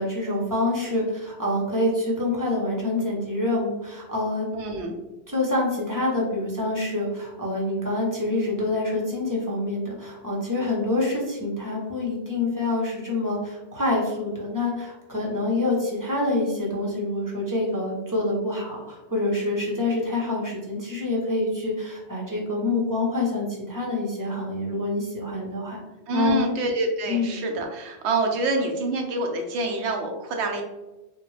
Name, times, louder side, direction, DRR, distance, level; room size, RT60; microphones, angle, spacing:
voice 1, 0.0-4.5 5.3-25.8 26.1-26.4 27.1-27.3, left 2 dB, 20° right, -4 dB, 0.6 m, -26 dB
voice 2, 4.5-4.9 26.1-30.6, right 2 dB, 75° right, 3 dB, 0.9 m, -26 dB
3.4 x 2.1 x 3.1 m, 1.1 s
omnidirectional pair, 1.2 m